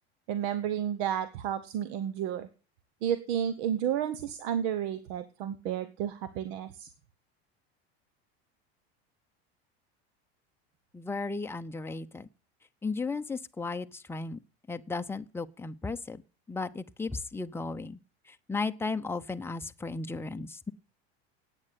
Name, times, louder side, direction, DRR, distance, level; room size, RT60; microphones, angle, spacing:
voice 1, 0.3-2.5 3.0-6.9, right 9 dB, 70° right, 1.1 m, -31 dB
voice 2, 10.9-12.3 12.8-14.4 14.7-16.2 16.5-18.0 18.5-20.7, left 3 dB, 5° left, 0.7 m, -35 dB
9.7 x 8.8 x 8.2 m
supercardioid pair, 110°, 32 cm